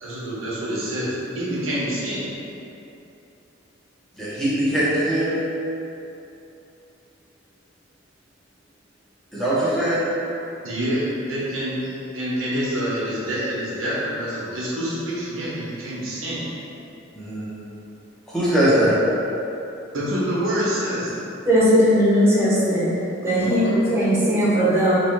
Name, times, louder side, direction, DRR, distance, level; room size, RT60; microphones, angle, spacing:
voice 1, 0.0-2.3 10.6-16.4 19.9-21.1, equal, 90° right, -6 dB, 1.1 m, -27 dB
voice 2, 4.2-5.3 9.3-10.1 17.1-17.5 18.3-19.0 23.4-23.5, right 1 dB, ahead, -11 dB, 1.2 m, -21 dB
voice 3, 21.4-22.8 23.2-25.0, equal, 15° right, -10 dB, 1.2 m, -18 dB
3.3 x 3.1 x 4.6 m, 2.9 s
head